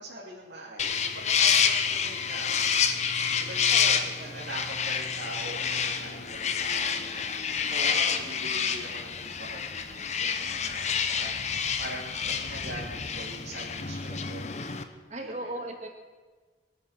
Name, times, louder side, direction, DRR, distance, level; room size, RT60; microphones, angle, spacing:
voice 1, 0.0-2.9 3.4-14.5 15.2-15.6, right 1 dB, 90° right, -6 dB, 2.9 m, -43 dB
sound 1, 0.8-14.8, left 7 dB, 40° left, 0.8 m, -28 dB
voice 2, 3.7-4.5 7.7-8.0 15.1-15.9, right 1 dB, 40° right, 3 dB, 1.9 m, -38 dB
23.0 x 9.2 x 5.9 m, 1.4 s
head